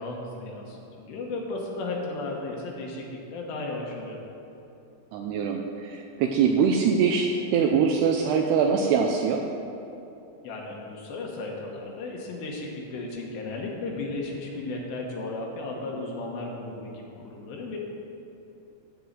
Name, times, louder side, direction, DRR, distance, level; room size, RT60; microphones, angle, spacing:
voice 1, 0.0-4.2 10.4-17.8, left 2 dB, 75° left, -1 dB, 3.2 m, -35 dB
voice 2, 5.1-9.4, right 6 dB, 85° right, 2 dB, 2.4 m, -23 dB
14.0 x 4.8 x 7.7 m, 2.8 s
omnidirectional pair, 5.3 m